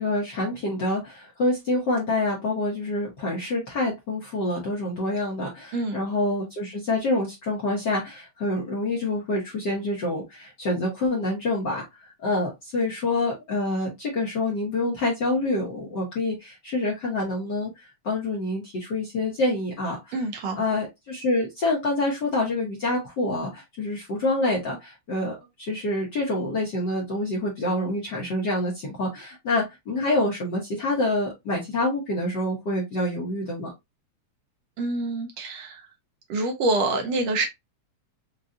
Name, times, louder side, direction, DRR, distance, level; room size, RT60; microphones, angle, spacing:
voice 1, 0.0-11.8 12.2-20.2 20.6-33.7, left 2 dB, 55° left, 1.3 m, -27 dB
voice 2, 20.1-20.6 34.8-35.9 36.3-37.5, right 2 dB, 70° right, 1.7 m, -26 dB
5.3 x 2.4 x 2.5 m
omnidirectional pair, 3.3 m